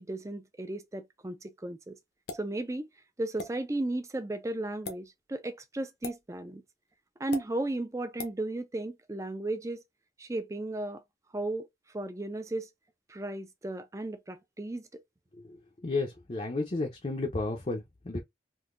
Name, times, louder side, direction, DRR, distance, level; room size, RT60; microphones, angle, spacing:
voice 1, 0.0-2.0 2.3-2.9 3.2-6.6 7.2-9.8 10.2-11.0 11.3-11.7 11.9-12.7 13.1-14.8, right 2 dB, 15° right, 0.4 m, -35 dB
champagne plopp bottle open plop blop, 2.3-2.5 3.4-3.5 4.7-5.0 6.0-6.2 7.3-7.5 8.2-8.4, left 3 dB, 65° left, 0.8 m, -38 dB
voice 2, 15.8-18.2, left 3 dB, 35° left, 0.6 m, -32 dB
3.8 x 2.7 x 2.5 m
head